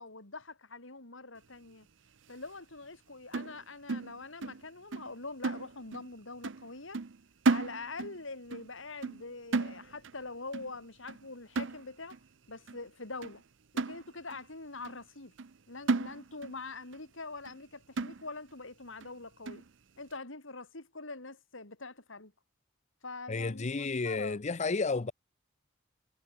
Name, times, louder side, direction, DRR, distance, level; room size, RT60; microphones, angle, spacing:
voice 1, 0.0-1.9 2.3-7.0 7.5-12.2 12.5-13.4 13.7-15.3 15.7-19.6 20.0-22.3 23.0-24.4, left 3 dB, 75° left, 3.8 m, -44 dB
sound 1, 3.3-4.6 4.9-5.1 5.4-6.1 6.4-6.7 6.9-8.2 8.5-8.7 9.0-10.2 10.5-10.8 11.1-11.3 11.6-12.2 12.7-12.8 13.2-13.4 13.8-14.4 14.8-15.0 15.4-15.6 15.9-16.6 16.9-17.0 17.4-17.6 18.0-18.5 19.0-19.1 19.5-19.7, right 3 dB, 65° right, 0.7 m, -34 dB
voice 2, 23.3-25.1, left 4 dB, 35° left, 0.6 m, -32 dB
head